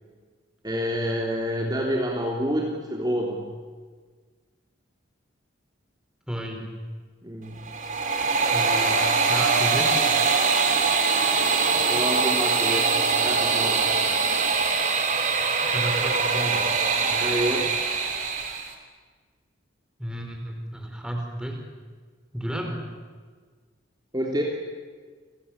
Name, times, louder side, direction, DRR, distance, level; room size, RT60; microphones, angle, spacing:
voice 1, 0.6-3.5 7.2-7.6 11.8-13.0 13.2-13.9 17.2-17.7 24.1-24.4, equal, 20° right, -2 dB, 3.4 m, -28 dB
voice 2, 6.3-6.7 8.5-10.0 15.7-16.6 17.1-17.4 20.0-21.6 22.3-22.8, equal, 5° right, 2 dB, 4.5 m, -32 dB
sound 1, 7.6-18.7, right 5 dB, 40° right, 3.3 m, -23 dB
30.0 x 21.5 x 8.9 m, 1.5 s
head